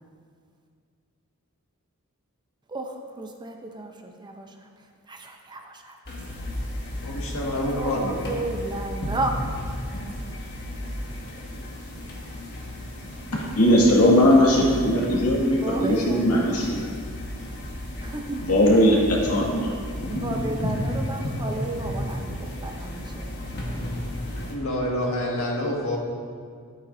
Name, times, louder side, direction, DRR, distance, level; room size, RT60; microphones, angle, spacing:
voice 1, 2.7-6.0 7.6-9.5 15.5-16.7 18.0-18.5 20.1-23.9, right 2 dB, 20° right, 2 dB, 0.7 m, -33 dB
sound 1, 6.0-24.5, left 1 dB, 50° left, 1.6 m, -33 dB
voice 2, 7.0-8.5 24.5-26.0, left 1 dB, 65° left, -3 dB, 1.9 m, -27 dB
voice 3, 13.6-16.8 18.4-19.7, equal, 85° left, -3 dB, 2.1 m, -19 dB
13.5 x 8.4 x 2.7 m, 2.1 s
head